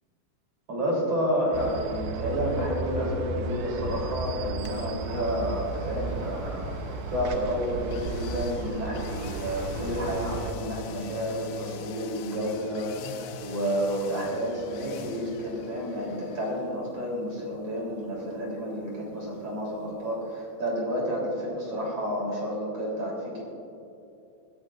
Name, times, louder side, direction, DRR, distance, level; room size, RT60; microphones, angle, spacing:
voice 1, 0.7-23.4, equal, 35° right, -3 dB, 4.0 m, -30 dB
sound 1, 1.5-10.5, right 3 dB, 85° right, 3.0 m, -34 dB
sound 2, 4.6-20.4 20.7-20.8, left 7 dB, 85° left, 3.0 m, -45 dB
20.5 x 16.0 x 2.5 m, 2.7 s
omnidirectional pair, 5.2 m